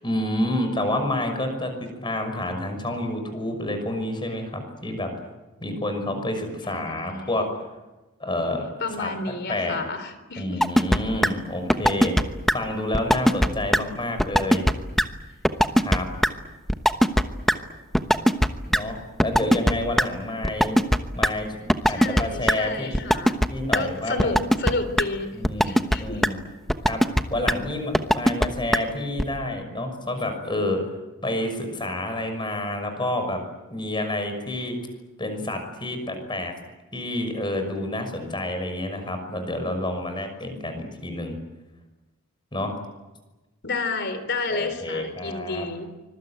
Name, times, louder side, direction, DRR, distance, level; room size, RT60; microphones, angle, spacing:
voice 1, 0.0-5.1 5.6-7.5 8.2-9.1 9.5-9.8 10.4-12.1 12.5-14.6 15.7-16.1 18.7-20.8 21.1-23.2 23.5-24.3 25.3-26.4 26.9-27.0 27.3-30.8 31.2-33.4 33.7-34.8 35.2-36.6 36.9-41.4 42.5-42.7 44.5-45.7, left 1 dB, 20° left, 6 dB, 6.0 m, -29 dB
voice 2, 6.6-7.3 8.8-10.6 21.9-23.4 23.7-26.2 43.6-45.9, left 3 dB, 50° left, 11 dB, 3.9 m, -31 dB
sound 1, 10.6-11.0 11.2-11.3 11.7-12.2 12.5-12.6 12.9-13.5 13.7-13.8 14.2-14.7 15.0-15.1 15.4-16.3 16.7-17.2 17.5-17.6 17.9-18.5 18.7-18.8 19.2-20.0 20.4-21.3 21.7-22.2 22.5-22.6 22.9-23.5 23.7-23.8 24.2-24.7 25.0-25.1 25.4-26.0 26.2-26.3 26.7-27.2 27.5-27.6 27.9-28.5 28.7-28.8 29.2-29.3, equal, ahead, 1.1 m, -18 dB
25.5 x 22.0 x 9.2 m, 1.1 s
head